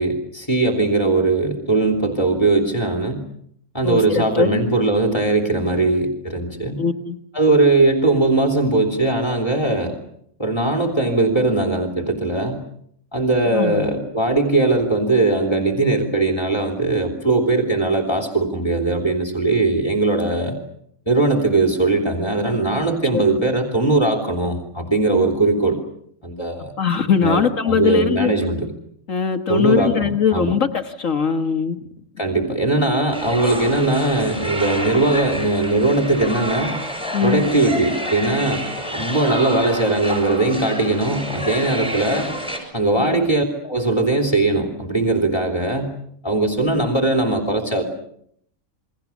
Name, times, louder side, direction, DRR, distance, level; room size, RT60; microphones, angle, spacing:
voice 1, 0.0-3.2 3.7-6.8 7.3-9.9 10.4-12.6 13.1-20.5 21.1-25.8 26.2-26.7 27.2-28.7 29.5-30.5 32.2-36.7 37.2-38.6 38.9-42.3 42.7-46.0 46.2-47.8, right 2 dB, 20° left, 3 dB, 3.3 m, -20 dB
voice 2, 3.8-4.6 6.8-7.2 13.5-13.9 23.1-23.2 26.8-28.3 29.1-31.8 37.1-37.5 43.0-43.2, left 6 dB, 65° left, 7 dB, 1.8 m, -21 dB
sound 1, 33.1-42.6, equal, 5° right, 6.8 m, -29 dB
29.0 x 23.0 x 7.2 m, 0.70 s
omnidirectional pair, 1.5 m